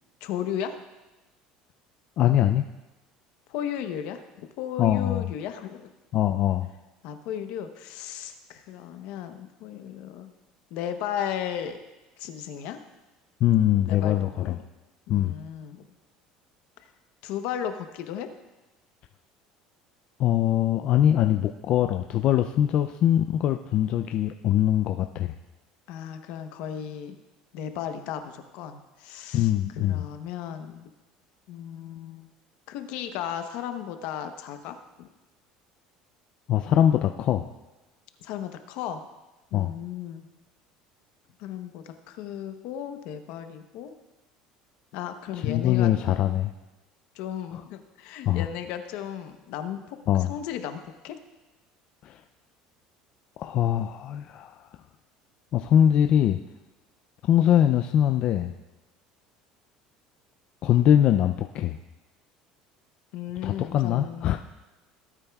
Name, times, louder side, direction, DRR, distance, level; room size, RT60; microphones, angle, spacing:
voice 1, 0.2-0.8 3.5-4.2 4.6-5.9 7.0-10.3 10.7-11.8 12.2-12.8 13.9-14.5 15.1-15.9 16.8-16.9 17.2-18.3 25.9-27.2 27.5-30.9 31.5-32.3 32.7-35.1 38.2-39.1 39.5-40.3 41.4-43.9 44.9-45.9 47.1-51.2 63.1-64.3, left 9 dB, 70° left, 7 dB, 0.9 m, -35 dB
voice 2, 2.2-2.6 4.8-5.3 6.1-6.7 13.4-14.6 15.1-15.3 20.2-25.3 29.3-30.0 36.5-37.5 39.5-39.7 45.3-46.5 47.5-47.6 48.3-48.5 50.1-50.3 52.0-52.2 53.4-54.7 55.5-56.4 57.3-58.5 60.6-61.8 63.4-64.4, left 11 dB, 45° left, 6 dB, 0.4 m, -22 dB
17.0 x 8.9 x 2.3 m, 1.1 s
cardioid pair, 140°, 2 cm